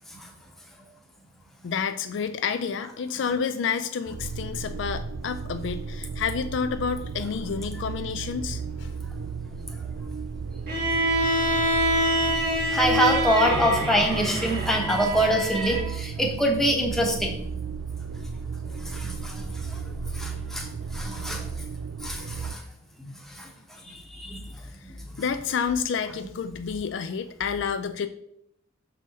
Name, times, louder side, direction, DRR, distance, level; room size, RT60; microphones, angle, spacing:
voice 1, 1.6-8.9 25.2-28.1, left 6 dB, 60° left, 10 dB, 0.3 m, -29 dB
sound 1, 4.1-22.6, right 5 dB, 80° right, 0.4 m, -34 dB
Bowed string instrument, 10.7-15.9, equal, 45° right, 1.8 m, -25 dB
voice 2, 12.7-17.3 18.9-19.5 19.7-19.8 20.1-20.7 20.9-21.4 22.0-22.6 23.0-23.5 23.8-24.4, equal, ahead, 1 dB, 0.8 m, -25 dB
6.2 x 3.9 x 4.1 m, 0.75 s
head